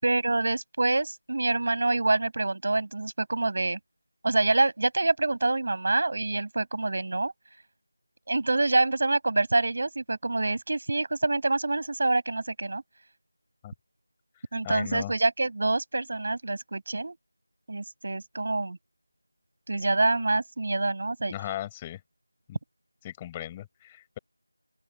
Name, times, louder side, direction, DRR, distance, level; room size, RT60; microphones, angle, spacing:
voice 1, 0.0-3.8 4.2-7.3 8.3-12.8 14.5-17.2 17.7-18.8 19.7-21.3, right 2 dB, 45° right, 7.0 m, -26 dB
voice 2, 14.6-15.1 21.3-22.0 22.5-22.6 23.0-24.2, left 12 dB, 10° left, 7.4 m, -37 dB
open air
figure-of-eight pair, 175°, 0 cm